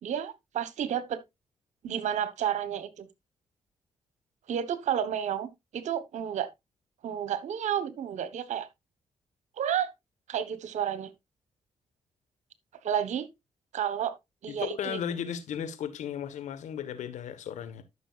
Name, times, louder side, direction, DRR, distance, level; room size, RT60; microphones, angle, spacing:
voice 1, 0.0-1.2 1.8-3.1 4.5-6.5 7.0-8.7 9.6-9.9 10.3-11.1 12.8-13.3 13.7-14.1 14.4-15.0, right 9 dB, 70° right, 1.1 m, -31 dB
voice 2, 14.5-17.8, left 8 dB, 75° left, 1.4 m, -35 dB
13.0 x 6.2 x 2.4 m
supercardioid pair, 50°, 12 cm